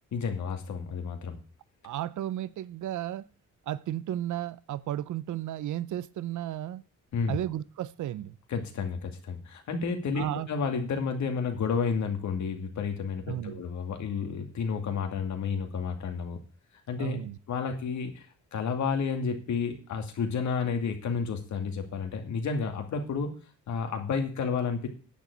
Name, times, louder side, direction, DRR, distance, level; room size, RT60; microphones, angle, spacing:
voice 1, 0.1-1.4 7.1-7.4 8.5-16.4 16.9-17.2 17.5-23.3 23.7-24.9, left 5 dB, 65° left, 2.5 m, -31 dB
voice 2, 1.8-3.3 3.7-6.8 7.3-8.4 10.2-10.5 13.3-13.6 17.0-17.4, right 12 dB, 70° right, 0.7 m, -34 dB
10.0 x 7.3 x 8.1 m
cardioid pair, 155°, 31 cm